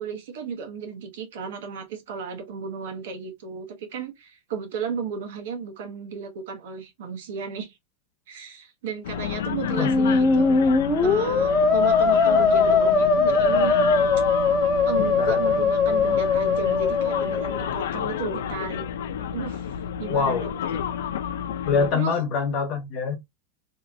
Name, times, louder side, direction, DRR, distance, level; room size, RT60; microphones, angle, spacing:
voice 1, 0.0-7.7 8.3-10.5 11.0-13.7 14.8-18.8 19.3-19.6 20.0-20.5 21.9-22.1, right 6 dB, 65° right, 1.0 m, -34 dB
sound 1, 9.0-21.9, left 9 dB, 85° left, 0.4 m, -31 dB
Musical instrument, 9.6-17.7, left 4 dB, 5° left, 0.5 m, -20 dB
voice 2, 20.0-20.5 21.7-23.2, left 5 dB, 35° left, 1.1 m, -24 dB
2.9 x 2.8 x 2.5 m
supercardioid pair, 165°, 0 cm